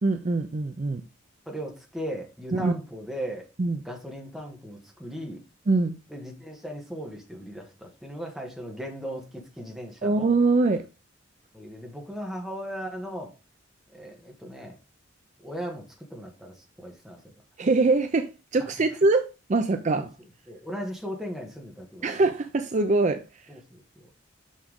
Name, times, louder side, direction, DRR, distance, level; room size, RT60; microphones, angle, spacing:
voice 1, 0.0-1.0 2.5-2.7 3.6-3.8 5.7-6.0 10.0-10.8 17.6-20.1 22.0-23.2, right 3 dB, 35° right, 0.5 m, -23 dB
voice 2, 1.4-3.5 3.8-5.4 6.1-10.3 11.5-13.3 13.9-14.8 15.4-17.2 18.6-18.7 20.0-20.1 20.5-22.2 23.5-24.1, equal, ahead, 1.7 m, -37 dB
6.3 x 6.0 x 3.6 m
head